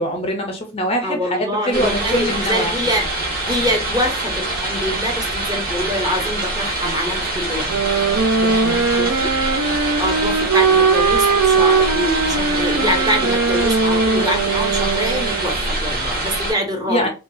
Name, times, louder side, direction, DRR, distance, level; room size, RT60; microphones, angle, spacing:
voice 1, 0.0-2.7 8.4-9.3 16.9-17.1, equal, 25° left, 0.5 m, -24 dB
voice 2, 1.0-3.1 3.5-7.8 10.0-17.1, equal, 20° right, 0.8 m, -24 dB
sound 1, 1.7-16.5, right 2 dB, 45° right, 1.5 m, -24 dB
sound 2, 7.7-15.7, right 4 dB, 60° right, 0.5 m, -19 dB
3.6 x 2.3 x 2.6 m
head